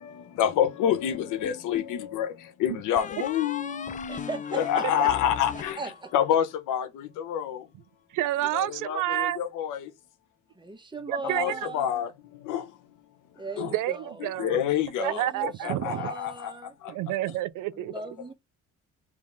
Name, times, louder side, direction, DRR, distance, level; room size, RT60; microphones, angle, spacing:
voice 1, 0.0-2.3 2.6-5.8 6.1-7.6 8.5-9.9 11.2-12.1 12.5-12.6 13.6-13.7 14.2-16.5, left 10 dB, 90° left, 1.0 m, -28 dB
sound 1, 1.1-2.0 3.0-6.4, left 7 dB, 25° left, 0.4 m, -39 dB
voice 2, 4.1-4.9 5.8-6.1 10.6-12.0 13.4-14.3 15.0-16.7 17.7-18.3, right 3 dB, 15° right, 1.1 m, -38 dB
voice 3, 8.1-9.4 11.1-11.7 13.6-14.6 15.0-16.1 16.9-17.9, right 15 dB, 90° right, 0.6 m, -29 dB
3.5 x 2.9 x 3.7 m
cardioid pair, 90°, 30 cm